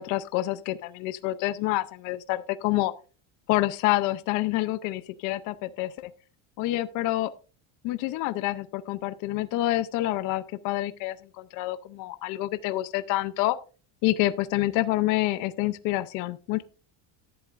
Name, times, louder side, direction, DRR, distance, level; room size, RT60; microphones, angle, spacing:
voice 1, 0.0-2.9 3.5-6.1 6.6-7.3 7.8-13.6 14.0-16.6, left 16 dB, 45° left, 13 dB, 0.5 m, -27 dB
12.0 x 11.0 x 2.4 m, 0.34 s
cardioid pair, 180°, 46 cm